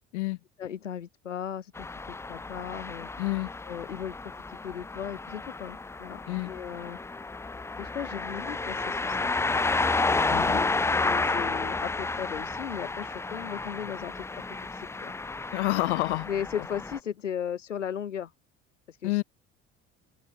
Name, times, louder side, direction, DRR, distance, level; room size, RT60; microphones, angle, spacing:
voice 1, 0.6-3.1 3.7-4.1 4.5-7.0 7.8-9.7 10.5-10.7 10.9-14.4 14.7-15.1 16.3-18.3 18.9-19.2, left 8 dB, 85° left, 1.0 m, -37 dB
sound 1, 1.7-17.0, left 3 dB, 10° left, 0.4 m, -31 dB
voice 2, 3.2-3.5 6.3-6.5 10.3-10.6 15.5-16.3 19.0-19.2, left 21 dB, 70° left, 2.2 m, -28 dB
figure-of-eight pair, 60°, 36 cm